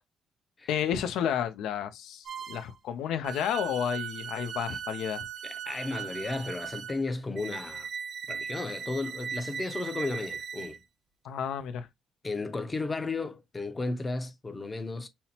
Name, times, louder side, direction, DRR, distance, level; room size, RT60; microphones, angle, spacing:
voice 1, 0.7-5.3 11.2-11.9, left 9 dB, 85° left, 0.4 m, -31 dB
sound 1, 2.2-2.7 3.2-10.8, right 7 dB, 55° right, 0.5 m, -39 dB
voice 2, 5.4-7.9 8.3-10.8 12.2-15.1, left 3 dB, 25° left, 0.6 m, -34 dB
5.5 x 2.0 x 2.8 m
cardioid pair, 90°, 0 cm